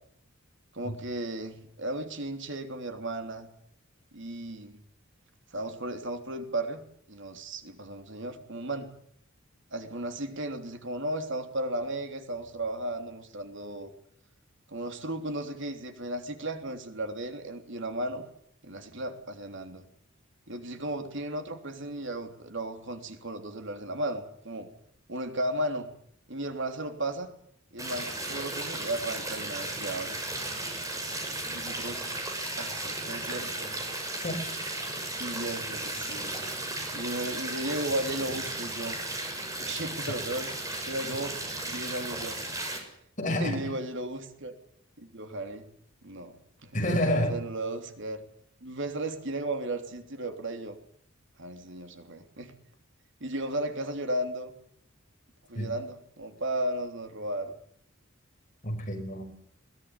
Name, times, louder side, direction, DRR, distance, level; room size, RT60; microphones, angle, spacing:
voice 1, 0.7-3.5 4.1-4.8 5.5-6.8 7.1-8.9 9.7-13.9 14.7-18.2 18.6-19.8 20.5-24.7 25.1-25.9 26.3-27.3 27.7-30.2 31.5-32.1 32.6-33.7 35.2-36.3 36.9-39.0 39.6-40.5 40.8-42.4 43.3-44.5 45.0-45.7 46.0-46.8 47.3-48.2 48.6-50.8 51.4-52.5 53.2-54.5 55.5-57.5, right 1 dB, 65° right, 6 dB, 3.3 m, -35 dB
sound 1, 27.8-42.8, right 2 dB, 15° right, 6.8 m, -35 dB
voice 2, 43.2-43.8 46.7-47.4 55.5-55.7 58.6-59.2, equal, 40° left, 3 dB, 6.4 m, -28 dB
21.5 x 20.0 x 9.8 m, 0.66 s
head